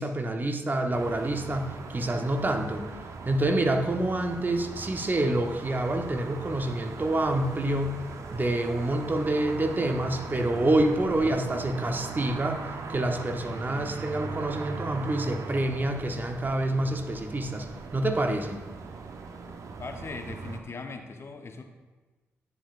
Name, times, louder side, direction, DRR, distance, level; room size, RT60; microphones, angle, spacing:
voice 1, 0.0-2.9 3.2-8.0 8.3-12.6 12.9-18.6, right 1 dB, 35° right, 4 dB, 1.0 m, -27 dB
sound 1, 0.9-20.6, right 4 dB, 65° right, 0.7 m, -39 dB
voice 2, 19.8-21.6, left 4 dB, 45° left, 5 dB, 0.9 m, -39 dB
9.6 x 7.3 x 2.5 m, 1.3 s
hypercardioid pair, 45°, 6 cm